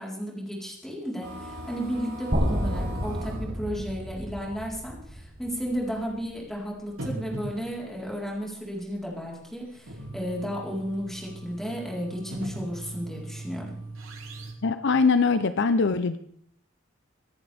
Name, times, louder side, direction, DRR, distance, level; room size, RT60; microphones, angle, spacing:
voice 1, 0.0-13.8, equal, ahead, -3 dB, 4.1 m, -33 dB
sound 1, 1.2-3.6 4.5-4.6 5.0-5.1 6.0-6.1 6.9-8.0 9.5-14.5, right 1 dB, 85° right, 3.1 m, -40 dB
sound 2, 2.3-6.3, equal, 55° right, 3.6 m, -30 dB
voice 2, 14.6-16.2, left 4 dB, 60° left, 11 dB, 0.7 m, -22 dB
25.0 x 10.5 x 3.5 m, 0.67 s
head